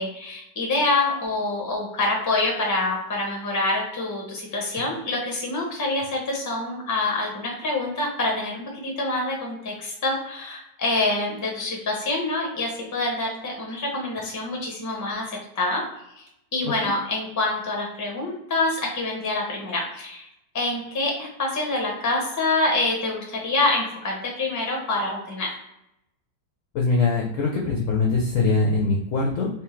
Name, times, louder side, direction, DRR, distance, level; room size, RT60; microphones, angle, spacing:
voice 1, 0.0-15.8 16.2-16.3 16.5-20.3 20.5-25.5, left 2 dB, 15° left, -1 dB, 0.6 m, -26 dB
voice 2, 26.7-29.5, left 3 dB, 65° left, -2 dB, 0.8 m, -22 dB
3.6 x 3.1 x 3.1 m, 0.81 s
omnidirectional pair, 2.0 m